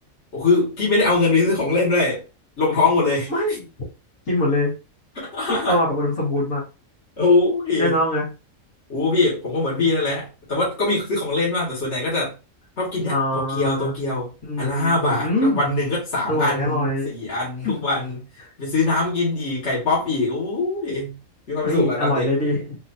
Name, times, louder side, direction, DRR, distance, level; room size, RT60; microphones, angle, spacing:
voice 1, 0.3-2.2 2.6-3.3 5.2-5.8 7.2-8.0 8.9-12.3 12.8-18.2 18.6-21.2 21.5-22.3, left 3 dB, 50° left, 2.3 m, -22 dB
voice 2, 3.3-3.7 4.3-4.7 5.7-6.6 7.8-8.3 13.0-13.9 14.5-15.6 16.2-17.1 17.6-17.7 21.6-22.8, left 1 dB, 70° left, 2.5 m, -23 dB
4.4 x 3.1 x 2.7 m
omnidirectional pair, 1.4 m